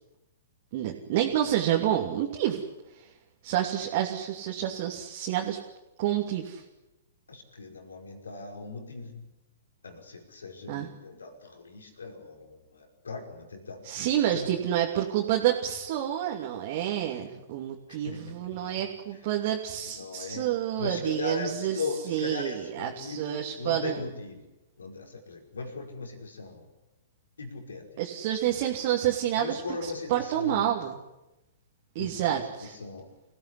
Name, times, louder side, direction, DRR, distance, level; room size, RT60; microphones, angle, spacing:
voice 1, 0.7-2.6 3.0-3.1 3.4-5.6 6.0-6.6 10.7-10.9 13.8-21.8 22.1-24.0 28.0-30.9 31.9-32.8, right 11 dB, 45° right, 0 dB, 2.8 m, -29 dB
voice 2, 7.3-9.3 9.8-14.0 14.3-14.5 17.9-18.9 19.9-20.5 20.8-24.5 24.8-26.7 27.4-28.0 29.4-30.8 32.0-33.1, left 4 dB, 75° left, 4 dB, 5.3 m, -39 dB
25.5 x 16.5 x 10.0 m, 0.99 s
figure-of-eight pair, 115°, 0 cm